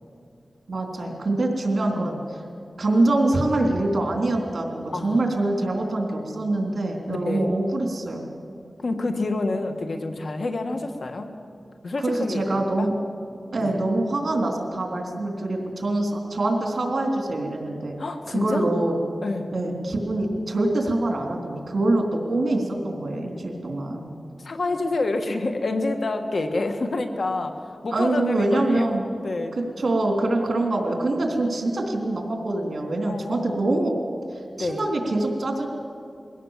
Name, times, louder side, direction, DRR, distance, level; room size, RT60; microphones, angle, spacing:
voice 1, 0.7-2.2 2.8-8.2 12.0-12.9 13.5-18.0 18.3-19.0 19.5-24.1 27.9-29.1 29.8-33.9 34.3-35.7, right 2 dB, 65° right, 2 dB, 3.5 m, -24 dB
voice 2, 4.9-5.3 7.1-7.5 8.8-11.3 11.8-12.9 13.6-13.8 18.0-18.6 19.2-19.5 24.4-28.9 29.2-29.6 33.1-33.6 34.6-34.8, left 2 dB, 70° left, 6 dB, 1.6 m, -28 dB
22.5 x 16.5 x 7.4 m, 2.4 s
wide cardioid pair, 65°, 0 cm